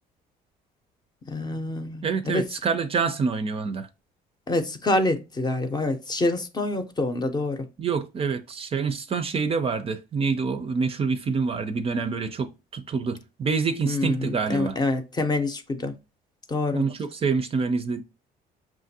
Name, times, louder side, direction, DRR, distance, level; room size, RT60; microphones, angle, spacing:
voice 1, 1.3-2.5 4.5-7.6 13.9-15.9 16.5-16.8, left 2 dB, 25° left, 0.6 m, -26 dB
voice 2, 2.0-3.9 7.8-14.8 16.7-18.0, right 5 dB, 35° right, 0.5 m, -26 dB
5.8 x 2.5 x 2.7 m
cardioid pair, 110°, 17 cm